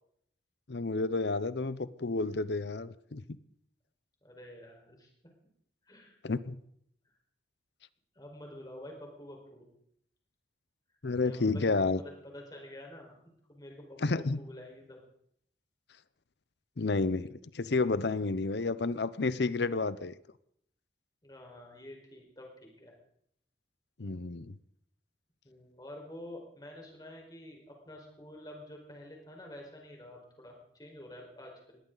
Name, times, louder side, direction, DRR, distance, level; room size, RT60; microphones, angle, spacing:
voice 1, 0.7-3.2 6.2-6.6 11.0-12.0 14.0-14.4 16.8-20.1 24.0-24.6, left 3 dB, 70° left, 16 dB, 0.7 m, -30 dB
voice 2, 4.2-5.1 5.8-6.2 8.1-9.6 11.2-13.2 13.5-14.0 14.4-15.0 21.2-22.9 25.4-31.8, left 1 dB, 20° left, 0 dB, 4.7 m, -48 dB
21.0 x 16.5 x 4.0 m, 0.70 s
head